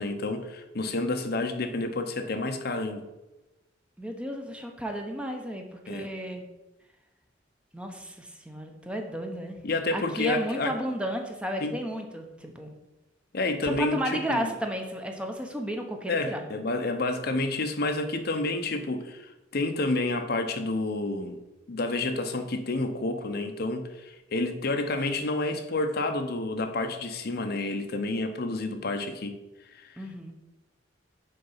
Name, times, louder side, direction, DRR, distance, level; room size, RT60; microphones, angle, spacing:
voice 1, 0.0-3.0 5.9-6.1 9.6-10.7 11.6-11.8 13.3-14.5 16.1-21.4 21.7-29.4 29.7-30.0, left 2 dB, 55° left, 7 dB, 0.7 m, -29 dB
voice 2, 4.0-6.5 7.7-9.6 9.9-12.8 13.6-16.4 30.0-30.3, equal, 5° right, 3 dB, 0.8 m, -33 dB
6.7 x 4.6 x 5.5 m, 1.0 s
head